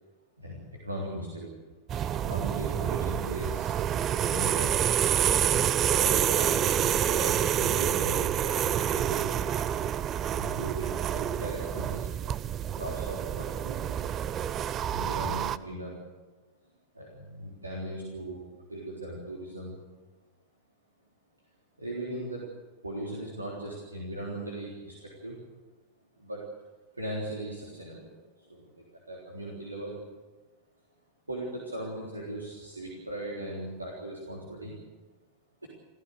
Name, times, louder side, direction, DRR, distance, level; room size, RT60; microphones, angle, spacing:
voice 1, 0.4-1.7 2.2-3.8 4.2-4.9 6.0-9.4 10.4-12.1 12.7-14.1 14.9-16.0 16.9-19.8 21.8-22.5 22.8-25.4 26.2-26.4 26.9-28.1 28.4-30.0 31.3-34.8, right 1 dB, 80° right, -2 dB, 3.6 m, -38 dB
sound 1, 1.9-15.6, right 10 dB, 30° right, 0.6 m, -28 dB
29.0 x 15.0 x 6.7 m, 1.2 s
figure-of-eight pair, 90°, 0 cm